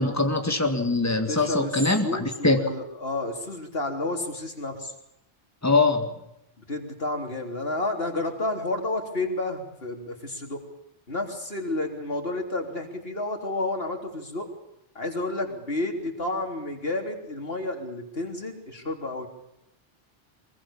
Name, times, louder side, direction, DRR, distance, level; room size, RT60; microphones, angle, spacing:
voice 1, 0.0-2.6 5.6-6.1, left 3 dB, 15° left, 6 dB, 2.1 m, -23 dB
voice 2, 1.3-1.8 2.0-4.9 6.7-10.6 11.1-14.5 15.0-19.3, left 2 dB, 70° left, 2 dB, 3.9 m, -30 dB
23.5 x 22.0 x 7.3 m, 0.83 s
omnidirectional pair, 1.0 m